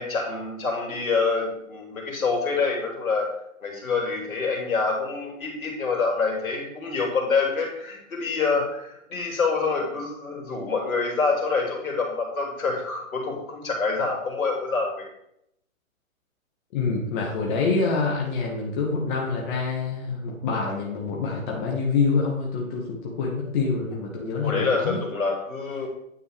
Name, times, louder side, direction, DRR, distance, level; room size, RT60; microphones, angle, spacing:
voice 1, 0.0-3.3 3.6-15.1 24.4-25.9, left 4 dB, 80° left, 0 dB, 2.9 m, -26 dB
voice 2, 16.7-25.0, left 4 dB, 35° left, -2 dB, 1.7 m, -26 dB
9.7 x 5.2 x 3.4 m, 0.76 s
hypercardioid pair, 135°, 42 cm